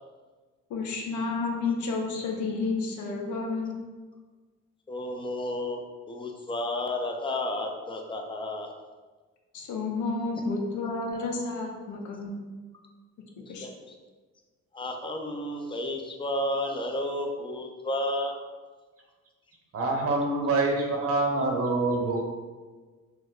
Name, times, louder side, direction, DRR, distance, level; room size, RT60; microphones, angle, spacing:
voice 1, 0.7-3.7 9.5-12.4 13.5-13.7, left 3 dB, 75° left, 1 dB, 0.6 m, -31 dB
voice 2, 4.9-5.8 6.1-8.7 13.4-13.9 14.7-18.4, left 1 dB, 15° left, 2 dB, 0.4 m, -32 dB
voice 3, 19.7-22.2, right 2 dB, 50° right, 0 dB, 0.8 m, -25 dB
3.0 x 2.1 x 3.6 m, 1.4 s
cardioid pair, 90°, 30 cm